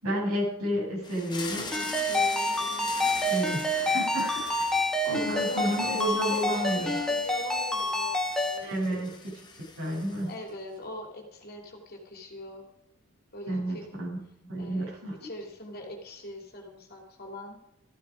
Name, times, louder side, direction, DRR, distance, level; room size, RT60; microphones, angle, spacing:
voice 1, 0.0-1.7 3.3-7.0 8.6-9.3 9.8-10.3 13.5-15.2, right 1 dB, 70° right, -3 dB, 7.7 m, -31 dB
sound 1, 1.0-10.5, left 4 dB, 20° left, 1.9 m, -42 dB
voice 2, 1.7-2.9 4.7-9.1 10.3-12.7 13.3-13.9 14.6-14.9 15.2-17.6, left 1 dB, 45° left, 1 dB, 3.1 m, -41 dB
Ringtone, 1.7-8.6, left 1 dB, 5° left, 1.8 m, -28 dB
15.5 x 14.5 x 5.1 m, 0.79 s
head